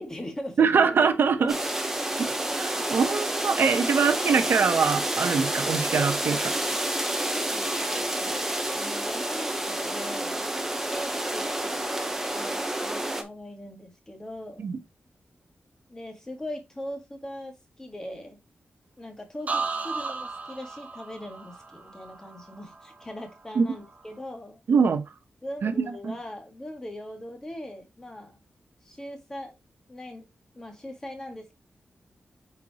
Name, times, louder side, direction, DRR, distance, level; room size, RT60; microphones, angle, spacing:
voice 1, 0.0-0.9 1.4-1.5 7.3-8.4 8.7-10.5 10.9-14.7 15.9-18.4 19.0-24.6 25.4-28.4 28.8-29.6 29.9-30.3 30.6-31.5, left 1 dB, 15° left, 1.8 m, -40 dB
voice 2, 0.6-1.6 2.2-6.5 14.6-14.8 23.5-23.6 24.7-25.0 25.6-26.1, right 5 dB, 70° right, 1.0 m, -23 dB
sound 1, 1.5-13.2, right 1 dB, 10° right, 1.0 m, -29 dB
sound 2, 19.5-23.3 23.6-24.1, right 4 dB, 40° right, 1.4 m, -35 dB
8.6 x 4.7 x 3.0 m
wide cardioid pair, 175°, 4 cm